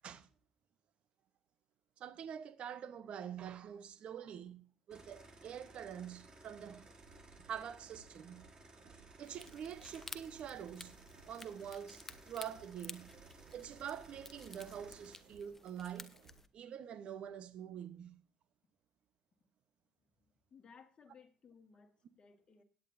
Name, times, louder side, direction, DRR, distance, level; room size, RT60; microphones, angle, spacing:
voice 1, 2.0-6.9 7.5-8.4 9.2-11.0 11.2-16.1 16.5-18.2, right 9 dB, 60° right, 1.1 m, -46 dB
sound 1, 4.9-15.2, right 2 dB, 40° right, 2.8 m, -59 dB
sound 2, 7.0-16.4, right 6 dB, 80° right, 1.5 m, -63 dB
sound 3, 9.2-16.5, left 2 dB, 15° left, 1.1 m, -54 dB
voice 2, 20.3-22.6, left 5 dB, 45° left, 1.8 m, -61 dB
17.0 x 9.3 x 2.7 m
hypercardioid pair, 60°, 2 cm